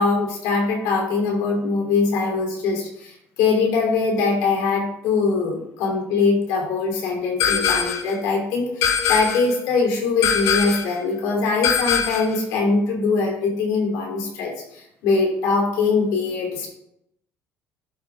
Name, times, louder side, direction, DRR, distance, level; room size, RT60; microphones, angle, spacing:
voice 1, 0.0-16.7, left 4 dB, 80° left, -1 dB, 2.9 m, -22 dB
sound 1, 7.4-8.1 8.8-9.5 10.2-10.9 11.6-12.4, left 7 dB, 65° left, 0.9 m, -22 dB
11.5 x 4.6 x 3.6 m, 0.78 s
cardioid pair, 160°, 6 cm